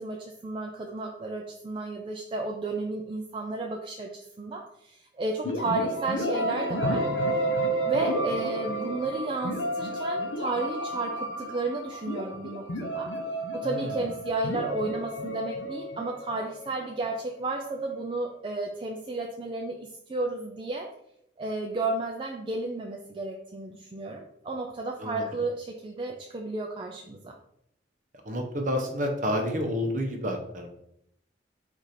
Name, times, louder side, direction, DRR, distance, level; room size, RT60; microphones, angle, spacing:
voice 1, 0.0-7.0 7.9-13.1 13.5-20.9 21.4-27.4, right 2 dB, 25° right, 1 dB, 0.3 m, -33 dB
sound 1, 5.4-17.2, right 1 dB, 90° left, 0.7 m, -31 dB
voice 2, 13.6-14.1 25.0-25.4 28.2-30.7, equal, 45° right, 3 dB, 0.7 m, -30 dB
4.7 x 2.5 x 4.1 m, 0.76 s
head